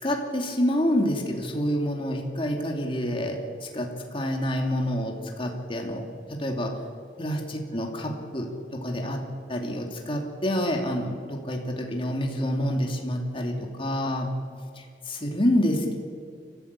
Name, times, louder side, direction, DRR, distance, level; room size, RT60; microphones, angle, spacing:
voice 1, 0.0-3.4 3.7-6.0 6.3-6.7 7.2-9.2 9.5-14.3 14.7-16.0, equal, 30° left, 1 dB, 2.7 m, -27 dB
29.5 x 13.5 x 8.3 m, 2.2 s
head